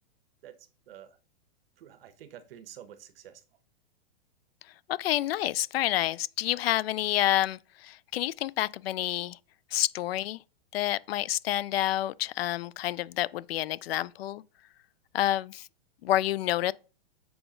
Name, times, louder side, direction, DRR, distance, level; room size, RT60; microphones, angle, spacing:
voice 1, 0.9-1.2 1.8-3.4, right 10 dB, 65° right, 1.1 m, -48 dB
voice 2, 4.9-7.6 7.8-9.4 9.7-10.4 10.7-14.4 15.1-15.6 16.0-16.7, left 14 dB, 75° left, 0.5 m, -28 dB
7.0 x 5.0 x 3.8 m
hypercardioid pair, 150°, 30 cm